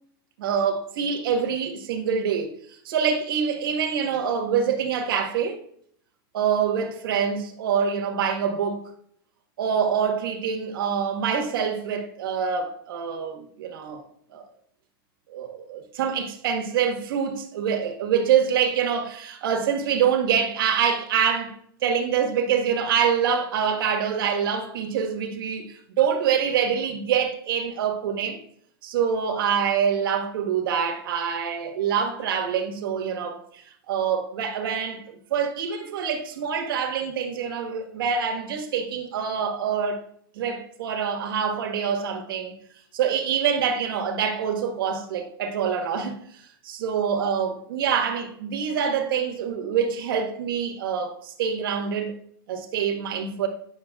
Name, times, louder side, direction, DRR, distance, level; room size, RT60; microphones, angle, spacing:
voice 1, 0.4-5.6 6.3-8.9 9.6-14.0 14.3-14.4 15.3-21.6 21.8-28.4 28.8-35.0 35.3-40.0 40.3-42.5 42.9-52.1 52.5-53.5, right 7 dB, 65° right, 1.4 m, -25 dB
9.6 x 6.4 x 2.3 m
supercardioid pair, 165°, 12 cm